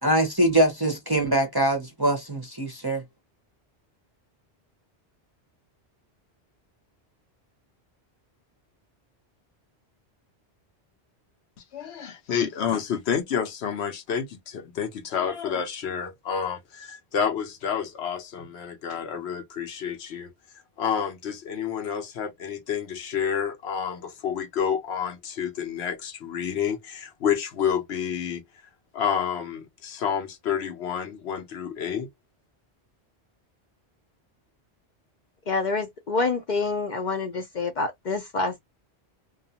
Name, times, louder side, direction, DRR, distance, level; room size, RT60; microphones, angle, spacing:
voice 1, 0.0-3.0, right 1 dB, 30° right, 0.5 m, -23 dB
voice 2, 11.7-20.3 20.8-28.4 28.9-32.1, left 7 dB, 75° left, 0.9 m, -29 dB
voice 3, 35.5-38.6, left 3 dB, 55° left, 0.6 m, -27 dB
2.4 x 2.3 x 2.7 m
omnidirectional pair, 1.1 m